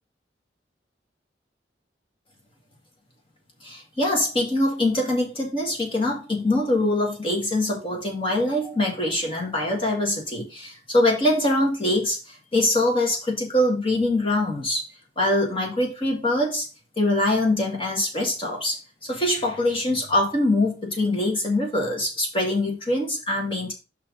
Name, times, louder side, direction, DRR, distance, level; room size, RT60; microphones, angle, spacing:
voice 1, 3.6-14.9 15.2-16.7 17.0-23.7, left 1 dB, 30° left, 0 dB, 2.1 m, -23 dB
5.7 x 4.6 x 5.3 m, 0.30 s
head